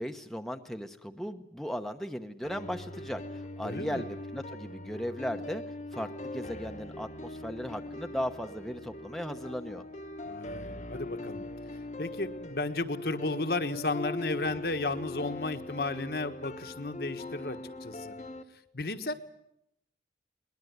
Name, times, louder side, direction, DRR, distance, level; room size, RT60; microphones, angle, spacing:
voice 1, 0.0-5.6 5.9-9.8, equal, ahead, 6 dB, 0.9 m, -37 dB
sound 1, 2.4-18.4, left 2 dB, 40° left, 1.2 m, -41 dB
voice 2, 3.6-4.1 10.3-11.5 12.0-18.1 18.7-19.1, left 2 dB, 60° left, 7 dB, 1.4 m, -33 dB
22.0 x 20.0 x 9.4 m, 0.80 s
head